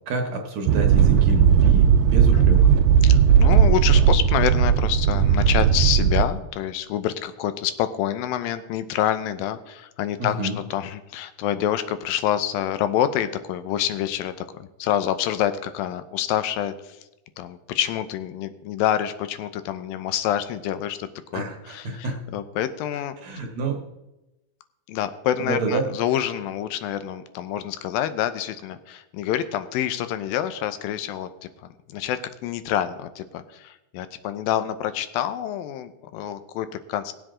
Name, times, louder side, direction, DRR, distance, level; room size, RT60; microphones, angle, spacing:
voice 1, 0.1-2.7 10.2-10.6 21.3-22.2 23.2-23.8 25.4-25.9, right 2 dB, 65° right, 2 dB, 2.0 m, -28 dB
sound 1, 0.7-6.2, right 8 dB, 80° right, 2.1 m, -17 dB
voice 2, 3.0-10.4 10.7-17.0 17.4-23.2 24.9-31.3 31.9-37.1, left 11 dB, 85° left, 12 dB, 2.5 m, -27 dB
18.0 x 7.7 x 3.7 m, 0.97 s
omnidirectional pair, 4.0 m